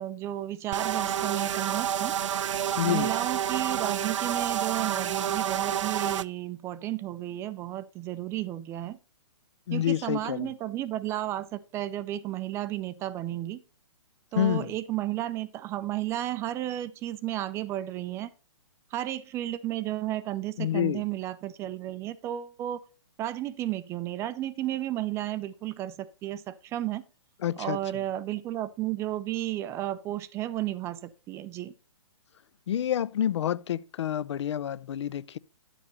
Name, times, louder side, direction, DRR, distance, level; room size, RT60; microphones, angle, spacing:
voice 1, 0.0-2.1 2.9-9.0 9.7-13.6 14.3-18.3 18.9-22.8 23.2-27.0 27.6-31.7, right 14 dB, 15° right, 0.4 m, -33 dB
sound 1, 0.7-6.2, right 10 dB, 70° right, 0.5 m, -29 dB
voice 2, 2.8-3.1 9.7-10.5 14.3-14.7 20.6-21.0 27.4-27.8 32.7-35.4, left 11 dB, 65° left, 0.5 m, -28 dB
9.8 x 7.2 x 4.1 m
hypercardioid pair, 140°, 16 cm